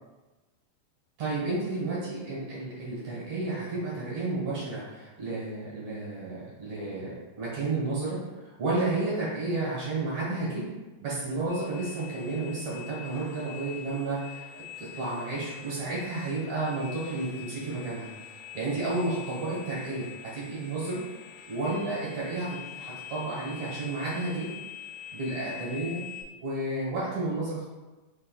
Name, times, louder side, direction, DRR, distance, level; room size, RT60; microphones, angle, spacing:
voice 1, 1.2-10.7 11.0-18.1 18.5-21.0 21.5-24.5 25.1-26.1 26.4-27.6, right 2 dB, 85° right, -8 dB, 1.4 m, -32 dB
sound 1, 11.5-26.2, left 9 dB, 85° left, 2.0 m, -45 dB
6.5 x 3.5 x 2.3 m, 1.2 s
omnidirectional pair, 4.9 m